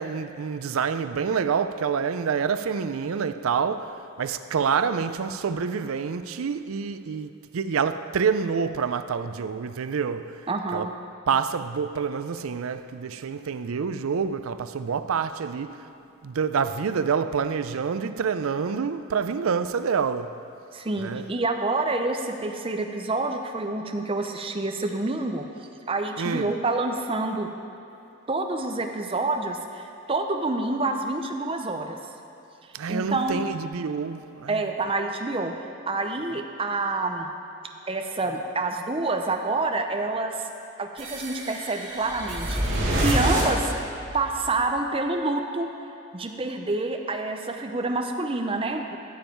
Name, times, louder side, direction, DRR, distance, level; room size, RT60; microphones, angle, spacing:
voice 1, 0.0-10.4 10.7-10.9 11.3-15.8 16.2-20.4 21.0-21.3 26.2-26.5 32.7-34.6, right 6 dB, 80° right, 0.4 m, -27 dB
voice 2, 10.5-10.9 20.7-25.4 25.9-27.5 28.3-32.0 32.9-33.4 34.5-35.5 35.9-37.3 37.9-40.5 40.8-43.7 44.1-45.7 46.1-49.0, right 2 dB, 25° right, 0.6 m, -27 dB
Texture of Metal, 41.0-44.4, right 1 dB, 60° right, 2.7 m, -27 dB
15.0 x 7.2 x 4.5 m
head